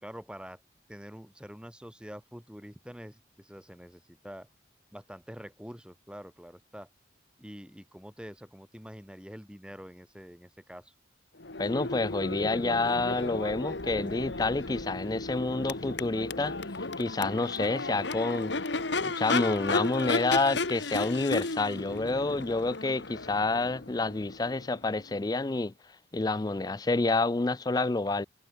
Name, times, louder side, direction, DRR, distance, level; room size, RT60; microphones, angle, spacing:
voice 1, 0.0-0.6 0.9-4.5 4.9-6.9 7.4-10.9, equal, 5° right, 2.6 m, -46 dB
Crowd / Race car auto racing / Accelerating revving vroom, 11.4-25.2, left 3 dB, 70° left, 1.8 m, -34 dB
voice 2, 11.6-16.6 17.0-18.5 19.0-25.7 26.1-28.3, left 3 dB, 20° left, 0.4 m, -28 dB
head